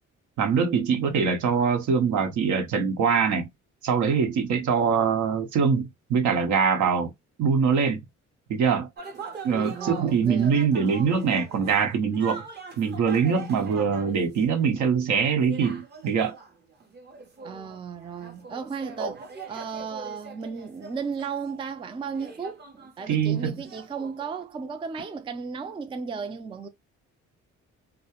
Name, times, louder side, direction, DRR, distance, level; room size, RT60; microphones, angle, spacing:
voice 1, 0.4-3.5 3.8-7.1 7.4-8.0 8.5-8.9 9.4-12.4 12.8-16.4 19.0-19.1 23.1-23.6, right 6 dB, 75° right, 0.8 m, -23 dB
sound 1, 9.0-15.0 15.5-24.4, right 4 dB, 35° right, 0.7 m, -43 dB
voice 2, 9.6-10.6 17.4-19.2 19.5-26.7, right 5 dB, 20° right, 0.3 m, -35 dB
2.3 x 2.1 x 2.8 m
cardioid pair, 90°, 30 cm